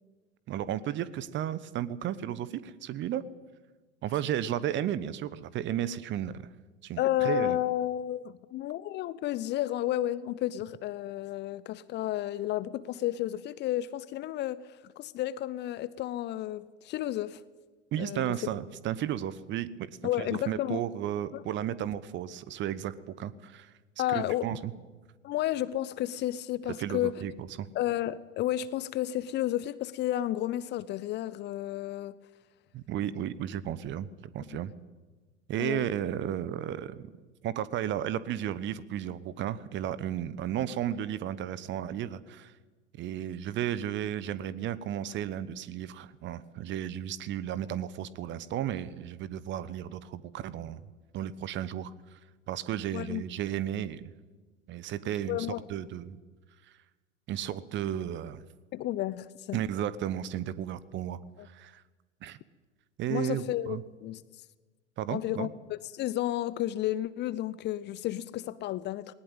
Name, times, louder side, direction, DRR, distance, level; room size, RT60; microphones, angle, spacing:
voice 1, 0.5-3.2 4.0-6.5 6.8-7.6 17.9-19.9 20.2-23.7 24.1-24.7 26.8-27.7 32.7-34.7 35.5-37.1 37.4-42.5 43.0-50.8 51.1-52.2 52.5-54.1 54.7-56.2 57.3-58.4 59.5-61.2 61.5-61.8 62.2-62.4 63.0-63.8 65.0-65.5, right 11 dB, 30° right, 18 dB, 1.1 m, -34 dB
voice 2, 7.0-17.4 18.0-18.4 20.0-20.8 21.3-21.4 24.0-24.5 25.2-27.2 27.7-32.2 35.6-35.9 52.9-53.2 55.3-55.6 58.7-59.6 61.4-61.5 63.1-64.2 65.1-69.1, left 13 dB, 30° left, 18 dB, 0.7 m, -32 dB
19.5 x 19.0 x 9.0 m, 1.3 s
figure-of-eight pair, 80°, 35 cm